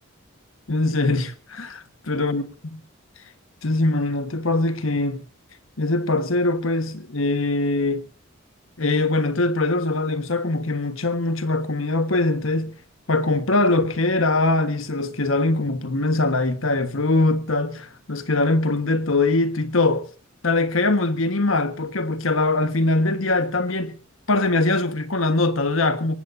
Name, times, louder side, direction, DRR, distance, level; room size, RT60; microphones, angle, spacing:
voice 1, 0.7-2.8 3.6-5.2 5.8-8.0 8.8-12.7 13.1-20.1 20.4-23.9 24.3-26.2, left 2 dB, 75° left, 1.4 m, -22 dB
23.5 x 19.5 x 2.7 m
head